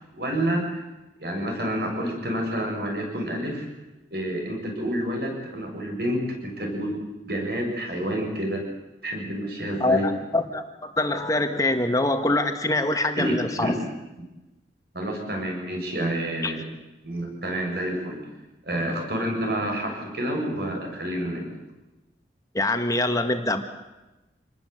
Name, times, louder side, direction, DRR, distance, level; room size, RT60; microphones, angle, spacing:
voice 1, 0.1-0.8 1.2-3.7 4.1-8.6 9.0-10.1 13.2-13.8 14.9-16.7 17.0-18.2 18.7-21.5, right 1 dB, 55° right, 2 dB, 6.9 m, -28 dB
voice 2, 9.8-10.6 11.0-13.8 16.4-16.5 22.5-23.6, left 2 dB, 20° left, 6 dB, 1.9 m, -24 dB
27.5 x 20.0 x 8.2 m, 1.0 s
head